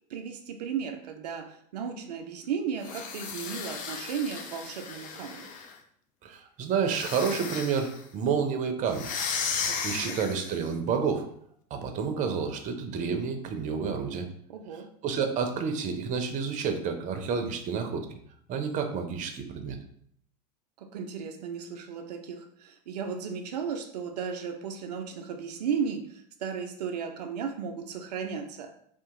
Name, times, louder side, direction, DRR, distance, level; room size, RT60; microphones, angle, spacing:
voice 1, 0.1-5.5 9.6-10.2 14.5-14.9 20.8-28.7, right 6 dB, 80° right, 5 dB, 0.4 m, -35 dB
sound 1, 2.8-5.8 6.8-8.0 8.9-10.6, left 6 dB, 40° left, 0.5 m, -35 dB
voice 2, 6.2-9.1 9.8-11.3 11.7-14.3 15.0-18.1 18.5-19.8, right 6 dB, 40° right, 6 dB, 0.6 m, -29 dB
2.8 x 2.4 x 3.7 m, 0.65 s
hypercardioid pair, 95°, 20 cm